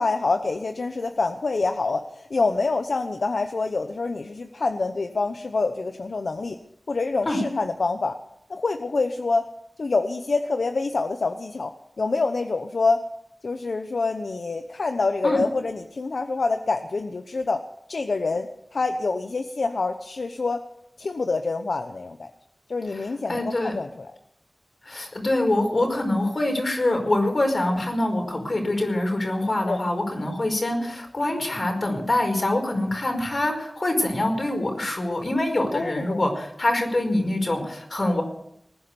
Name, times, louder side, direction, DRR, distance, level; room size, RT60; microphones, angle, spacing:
voice 1, 0.0-6.6 6.9-8.2 8.5-9.4 9.8-13.0 13.4-17.6 17.9-18.5 18.7-20.6 21.0-22.3 22.7-24.1 29.7-29.8 35.7-36.2, left 3 dB, 90° left, 7 dB, 0.8 m, -26 dB
voice 2, 22.9-23.7 24.8-38.2, left 1 dB, 60° left, 3 dB, 5.2 m, -25 dB
19.5 x 10.5 x 7.0 m, 0.74 s
wide cardioid pair, 50°, 0 cm